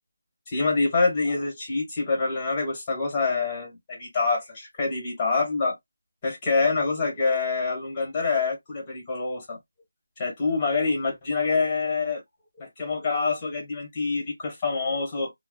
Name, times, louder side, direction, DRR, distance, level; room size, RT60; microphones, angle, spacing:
voice 1, 0.5-5.8 6.2-9.6 10.2-12.2 12.6-15.3, left 4 dB, 20° left, 1.4 m, -26 dB
3.2 x 2.1 x 2.3 m
figure-of-eight pair, 170°, 0 cm